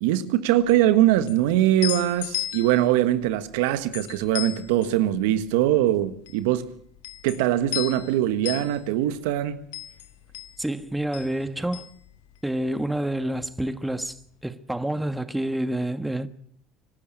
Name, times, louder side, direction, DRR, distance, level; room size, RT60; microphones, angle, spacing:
voice 1, 0.0-6.7 7.2-9.6, right 13 dB, 80° right, 1.4 m, -22 dB
sound 1, 0.6-12.9 13.1-14.2, left 15 dB, 80° left, 1.6 m, -37 dB
voice 2, 10.6-11.9 12.4-14.2 14.4-16.3, right 1 dB, 5° right, 1.5 m, -28 dB
25.0 x 12.5 x 8.8 m
hypercardioid pair, 80°, 0 cm